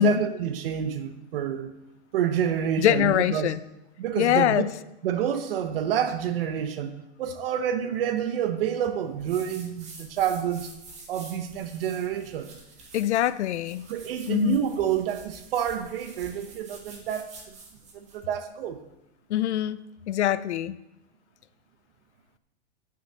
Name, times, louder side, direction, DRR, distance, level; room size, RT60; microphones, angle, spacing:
voice 1, 0.0-1.7 2.1-3.5 4.0-4.6 5.0-6.9 7.2-10.7 11.1-12.5 13.9-17.5 17.9-18.8, right 9 dB, 60° right, 1.1 m, -28 dB
voice 2, 2.8-3.6 4.2-4.7 12.9-13.8 14.3-14.6 19.3-20.8, left 12 dB, 80° left, 0.7 m, -23 dB
sound 1, 9.2-18.2, right 3 dB, 20° right, 1.8 m, -48 dB
9.8 x 6.6 x 6.8 m
supercardioid pair, 160°, 33 cm